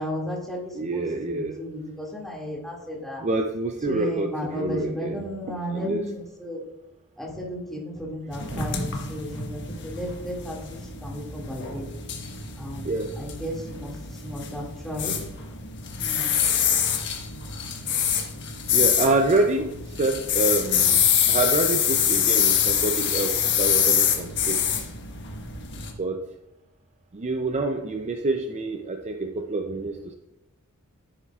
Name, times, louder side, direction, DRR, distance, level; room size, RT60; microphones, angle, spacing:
voice 1, 0.0-3.2 3.9-6.6 7.2-11.9 12.6-15.2 16.0-16.3, equal, ahead, -4 dB, 2.2 m, -34 dB
voice 2, 0.7-1.6 3.2-5.3 5.7-6.1 8.5-8.6 12.8-13.1 18.7-21.0 21.3-24.6 26.0-26.2 27.1-30.1, right 2 dB, 30° right, 4 dB, 0.5 m, -27 dB
sound 1, 8.3-25.9, left 8 dB, 55° left, 1.2 m, -25 dB
10.5 x 8.9 x 2.4 m, 0.88 s
head